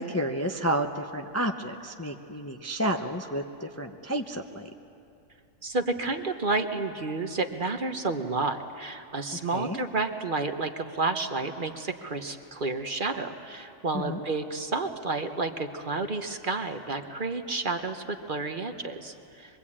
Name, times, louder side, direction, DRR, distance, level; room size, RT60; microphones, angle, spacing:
voice 1, 0.0-4.7 9.5-9.8 13.9-14.2, right 1 dB, 15° left, 4 dB, 0.6 m, -31 dB
voice 2, 5.6-19.6, right 3 dB, 40° right, 6 dB, 1.0 m, -31 dB
24.0 x 22.0 x 8.6 m, 2.6 s
omnidirectional pair, 1.4 m